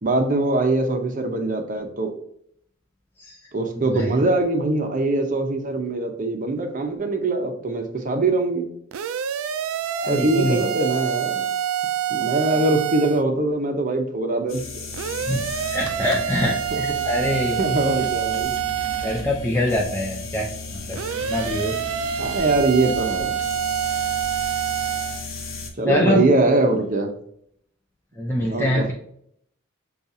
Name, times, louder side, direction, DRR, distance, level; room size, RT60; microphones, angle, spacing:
voice 1, 0.0-2.1 3.5-8.7 10.1-11.4 12.1-14.6 16.7-16.8 17.6-18.5 22.2-23.4 25.8-27.1 28.5-28.9, right 2 dB, 40° right, 4 dB, 0.7 m, -22 dB
sound 1, 8.9-13.2 14.9-19.3 20.9-25.2, right 9 dB, 90° right, 0.3 m, -27 dB
voice 2, 9.9-10.6 12.5-12.6 15.2-17.6 19.0-20.5 20.9-21.0 21.3-21.8 25.9-26.3 28.2-28.9, left 1 dB, 10° left, -2 dB, 0.4 m, -24 dB
sound 2, 14.5-25.7, left 2 dB, 80° left, 0.8 m, -35 dB
6.8 x 2.4 x 2.6 m, 0.69 s
head